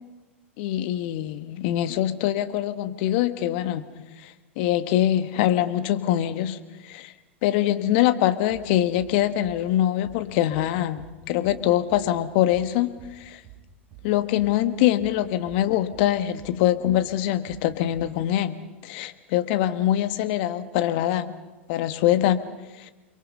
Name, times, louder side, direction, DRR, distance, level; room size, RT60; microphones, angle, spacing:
voice 1, 0.6-3.8 4.2-7.1 7.4-13.4 14.0-21.4 21.7-22.9, left 12 dB, 55° left, 10 dB, 1.4 m, -24 dB
sound 1, 8.5-8.7 9.0-9.2 9.4-9.6 10.0-10.2 10.5-10.7 11.0-11.2 11.4-11.6 11.9-12.1 12.5-12.7 13.0-13.2 13.4-13.6 13.9-14.1 14.4-14.6 15.0-15.2 15.4-15.6 15.9-16.1 16.4-16.6 16.8-17.0 17.5-17.7 17.9-18.1, right 12 dB, 45° right, 5.8 m, -48 dB
29.5 x 23.0 x 5.5 m, 1.2 s
hypercardioid pair, 95°, 7 cm